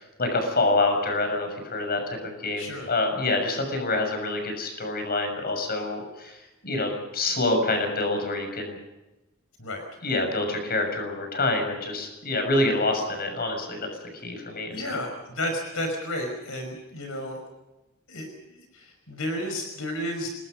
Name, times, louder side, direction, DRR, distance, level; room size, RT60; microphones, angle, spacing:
voice 1, 0.2-8.8 10.0-15.0, left 2 dB, 50° left, 5 dB, 6.8 m, -27 dB
voice 2, 2.6-2.9 9.6-9.8 14.7-17.4 18.1-20.3, left 1 dB, 75° left, 4 dB, 5.5 m, -32 dB
27.5 x 21.5 x 5.3 m, 1.0 s
head